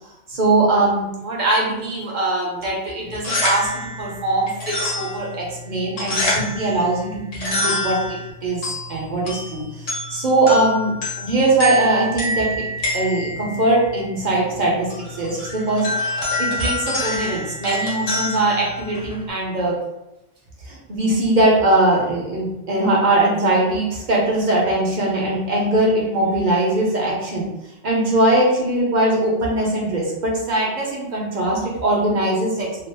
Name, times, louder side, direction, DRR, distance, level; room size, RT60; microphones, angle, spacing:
voice 1, 0.0-12.7 12.9-19.8 20.6-27.5 27.8-32.7, right 2 dB, 45° right, -3 dB, 0.9 m, -21 dB
sound 1, 3.0-19.3, left 1 dB, 75° left, 1.3 m, -27 dB
3.0 x 2.0 x 3.3 m, 0.91 s
omnidirectional pair, 1.2 m